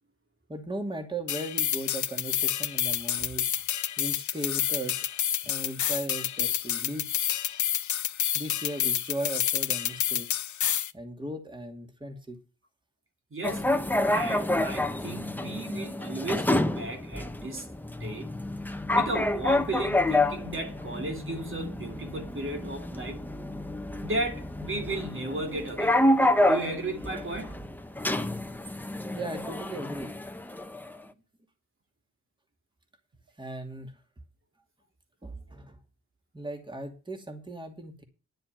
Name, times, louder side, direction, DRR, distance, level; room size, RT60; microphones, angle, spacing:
voice 1, 0.5-3.5 4.0-5.1 5.4-7.1 8.3-10.3 10.9-12.4 29.1-30.2 33.4-33.9 35.2-35.8 36.3-38.0, right 1 dB, 15° right, 2.5 m, -37 dB
sound 1, 1.3-10.9, left 10 dB, 85° left, 0.8 m, -29 dB
voice 2, 13.3-17.7 18.0-18.3 18.9-23.2 24.0-26.0 26.4-27.6, right 2 dB, 45° right, 2.6 m, -35 dB
sound 2, 13.4-31.0, left 1 dB, 5° left, 1.0 m, -28 dB
10.5 x 6.7 x 9.0 m
wide cardioid pair, 100°, 29 cm